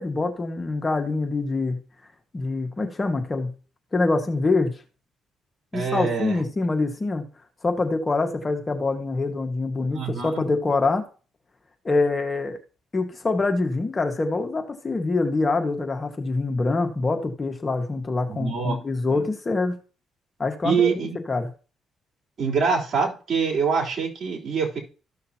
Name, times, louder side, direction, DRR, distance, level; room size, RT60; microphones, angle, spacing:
voice 1, 0.0-1.8 2.3-3.5 3.9-4.7 5.7-7.3 7.6-11.0 11.8-12.6 12.9-19.7 20.4-20.9 21.3-21.5, left 3 dB, 30° left, 5 dB, 1.6 m, -25 dB
voice 2, 5.7-6.4 9.9-10.3 18.3-18.8 19.1-19.2 20.6-21.2 22.4-24.8, right 5 dB, 50° right, -2 dB, 3.5 m, -25 dB
14.0 x 6.5 x 2.9 m, 0.36 s
cardioid pair, 90°, 0 cm